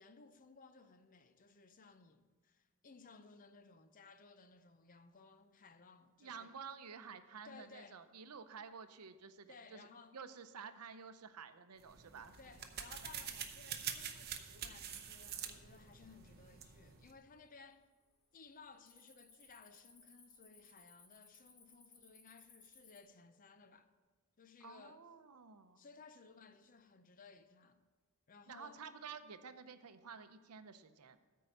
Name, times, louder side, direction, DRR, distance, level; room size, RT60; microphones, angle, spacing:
voice 1, 0.0-6.5 7.4-8.0 9.5-10.2 12.4-17.8 18.3-23.9 24.4-25.0 25.8-27.8 28.3-28.8, left 4 dB, 40° left, 0.6 m, -59 dB
voice 2, 6.2-9.9 10.1-12.3 24.6-25.8 28.5-31.2, right 6 dB, 85° right, 0.7 m, -51 dB
sound 1, 11.8-17.2, right 8 dB, 45° right, 0.8 m, -46 dB
Cricket, 15.9-16.0 16.7-17.3 17.5-17.8 18.1-23.0, left 4 dB, 65° left, 2.9 m, -63 dB
13.5 x 4.7 x 6.6 m
head